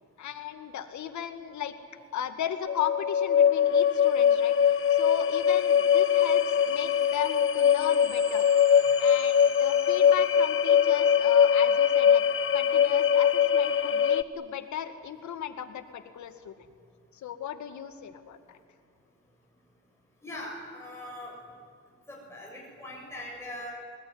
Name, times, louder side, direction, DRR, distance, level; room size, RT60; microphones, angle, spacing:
voice 1, 0.2-1.7 2.1-4.5 4.9-8.5 9.0-12.2 12.5-16.5 17.1-18.6, left 9 dB, 70° left, 9 dB, 2.2 m, -36 dB
sound 1, 2.7-14.2, left 8 dB, 45° left, 0.8 m, -22 dB
sound 2, 6.2-10.8, right 6 dB, 80° right, 4.9 m, -49 dB
voice 2, 20.2-21.3 22.1-23.7, left 1 dB, 10° left, -3 dB, 6.6 m, -41 dB
29.0 x 20.0 x 9.7 m, 2.2 s
cardioid pair, 90°, 30 cm